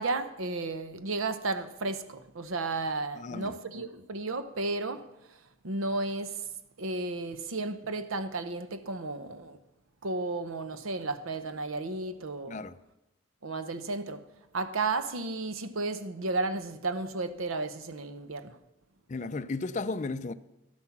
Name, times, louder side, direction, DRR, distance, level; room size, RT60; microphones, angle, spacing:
voice 1, 0.0-5.4 5.6-6.5 6.8-9.6 10.0-12.6 13.4-14.2 14.5-18.6, right 3 dB, 80° right, 0.8 m, -33 dB
voice 2, 3.2-3.6 12.5-12.8 19.1-20.3, left 3 dB, 35° left, 0.4 m, -34 dB
11.5 x 9.7 x 5.9 m
head